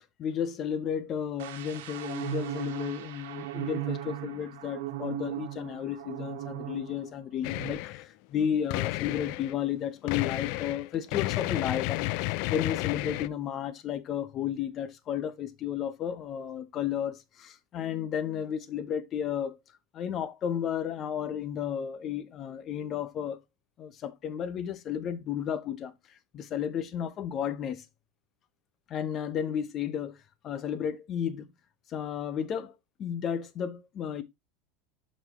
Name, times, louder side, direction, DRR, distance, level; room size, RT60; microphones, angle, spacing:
voice 1, 0.2-19.6 19.9-23.4 23.8-25.9 26.3-27.8 28.9-30.2 30.4-31.5 31.9-32.7 33.0-34.2, left 9 dB, 35° left, 0.9 m, -33 dB
sound 1, 1.4-7.1 7.4-7.7, right 15 dB, 85° right, 1.3 m, -37 dB
sound 2, 7.4-8.0 8.7-9.5 10.1-13.3, left 19 dB, 60° left, 0.3 m, -32 dB
7.1 x 5.5 x 2.9 m
supercardioid pair, 140°, 0 cm